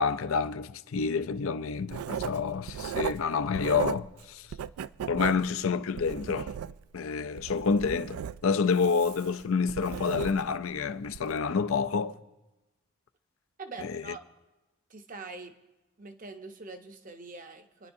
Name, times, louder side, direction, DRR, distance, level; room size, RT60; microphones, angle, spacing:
voice 1, 0.0-4.5 5.1-6.5 6.9-12.2 13.8-14.0, left 5 dB, 70° left, 0.5 m, -28 dB
Writing, 1.9-4.2 4.5-7.0 7.4-10.6 11.1-11.3, right 8 dB, 85° right, 0.3 m, -36 dB
voice 2, 13.6-14.2 14.9-15.5 16.0-17.9, right 3 dB, 40° right, 0.8 m, -43 dB
27.5 x 10.5 x 2.7 m
head